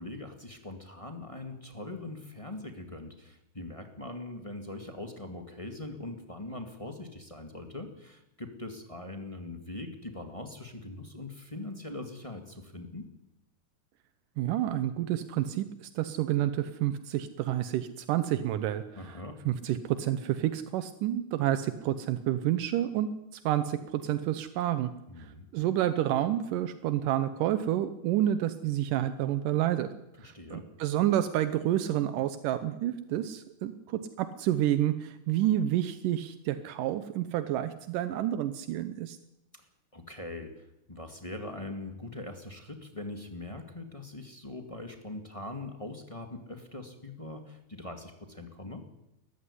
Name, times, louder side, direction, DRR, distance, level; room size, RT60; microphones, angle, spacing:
voice 1, 0.0-13.1 18.9-19.4 25.1-25.5 30.2-30.6 39.5-39.7 39.9-48.8, left 2 dB, 15° left, 5 dB, 1.6 m, -42 dB
voice 2, 14.4-19.2 19.5-24.9 25.5-29.9 30.2-39.2, right 12 dB, 80° right, 11 dB, 2.5 m, -29 dB
21.0 x 14.5 x 9.9 m, 0.88 s
omnidirectional pair, 3.7 m